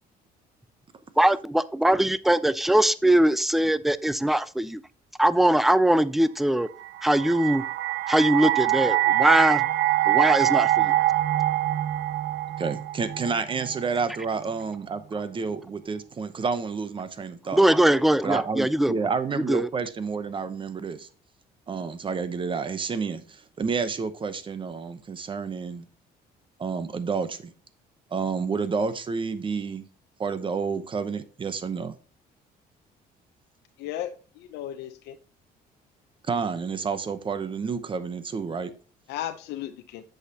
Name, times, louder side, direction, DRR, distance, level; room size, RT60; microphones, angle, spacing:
voice 1, 1.2-4.8 5.2-6.7 7.0-7.6 8.1-9.7 10.1-10.9 17.5-18.9 19.3-19.7, right 1 dB, ahead, 16 dB, 0.3 m, -21 dB
sound 1, 6.8-13.9, right 14 dB, 70° right, 0.7 m, -24 dB
voice 2, 12.6-17.6 18.2-21.1 21.7-25.8 26.6-27.5 28.1-29.8 30.2-31.9 36.3-38.7, right 5 dB, 30° right, 12 dB, 0.8 m, -30 dB
voice 3, 33.8-35.2 39.1-40.0, left 12 dB, 85° left, 7 dB, 0.7 m, -35 dB
7.9 x 6.4 x 2.8 m, 0.37 s
cardioid pair, 110°, 17 cm